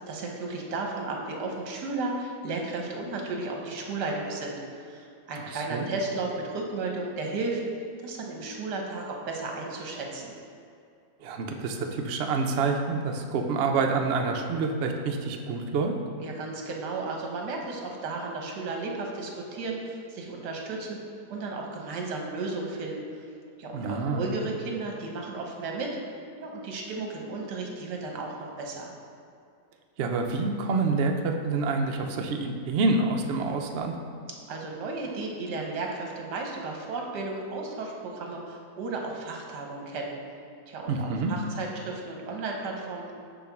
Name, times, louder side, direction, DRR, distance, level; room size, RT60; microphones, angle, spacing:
voice 1, 0.1-7.6 8.0-10.3 16.2-23.0 23.6-26.0 26.4-28.9 34.5-40.1 40.7-43.1, right 3 dB, 75° right, 0 dB, 1.5 m, -34 dB
voice 2, 11.2-15.9 23.7-24.3 30.0-33.9 40.9-41.3, right 4 dB, 90° right, 3 dB, 0.5 m, -27 dB
6.3 x 3.7 x 5.8 m, 2.5 s
omnidirectional pair, 1.9 m